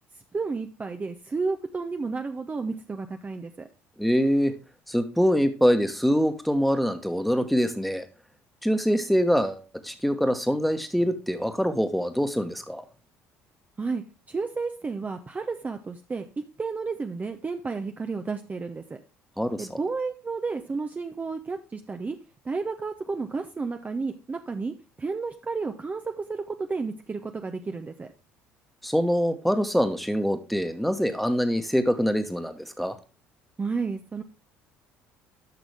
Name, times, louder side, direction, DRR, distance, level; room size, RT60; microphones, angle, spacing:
voice 1, 0.3-3.7 13.8-19.0 19.6-22.2 22.4-28.1 33.6-34.2, right 4 dB, 25° right, 5 dB, 0.8 m, -32 dB
voice 2, 4.0-4.5 4.9-8.0 8.6-12.8 19.4-19.7 28.8-33.0, equal, ahead, 8 dB, 1.3 m, -24 dB
10.5 x 6.1 x 3.4 m, 0.31 s
hypercardioid pair, 60°, 7 cm